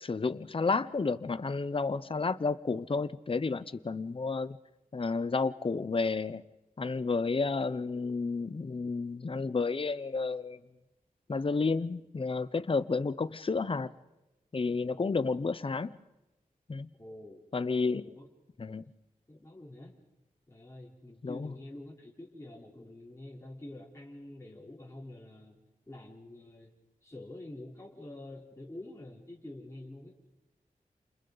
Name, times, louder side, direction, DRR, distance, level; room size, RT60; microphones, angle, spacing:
voice 1, 0.0-4.6 4.9-6.4 6.8-10.6 11.3-13.9 14.5-15.9 16.7-16.9 17.5-18.0 18.6-18.8 21.2-21.5, left 4 dB, 40° left, 0.7 m, -31 dB
voice 2, 17.0-17.4 17.9-18.3 19.3-19.9 20.5-25.6 25.9-26.7 27.0-30.2, left 1 dB, 20° left, 3.8 m, -47 dB
29.5 x 28.5 x 4.0 m
wide cardioid pair, 95°, 15 cm